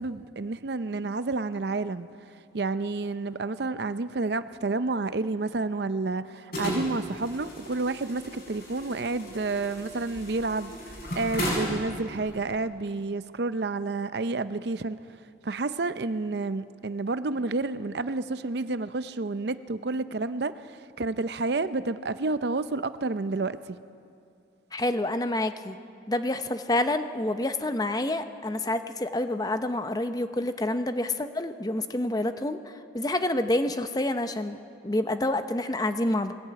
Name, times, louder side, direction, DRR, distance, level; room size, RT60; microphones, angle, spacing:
voice 1, 0.0-2.1 2.5-15.0 15.4-23.8, right 3 dB, 60° right, 0.6 m, -30 dB
sound 1, 6.5-12.5, equal, 50° left, 7.1 m, -35 dB
voice 2, 24.7-25.8 26.1-34.6 34.8-36.3, left 1 dB, 20° left, 0.7 m, -28 dB
20.5 x 16.5 x 8.8 m
head